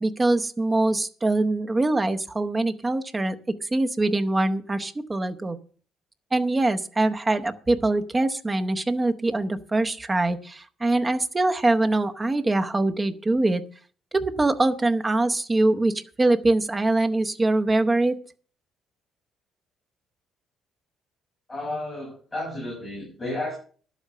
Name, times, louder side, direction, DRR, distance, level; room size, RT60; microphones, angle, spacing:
voice 1, 0.0-3.4 3.6-5.6 6.3-13.6 14.1-18.2, right 2 dB, 15° right, 8 dB, 0.8 m, -23 dB
voice 2, 21.5-23.5, left 1 dB, 15° left, -4 dB, 6.7 m, -32 dB
11.5 x 8.2 x 6.6 m, 0.43 s
cardioid pair, 155°, 0 cm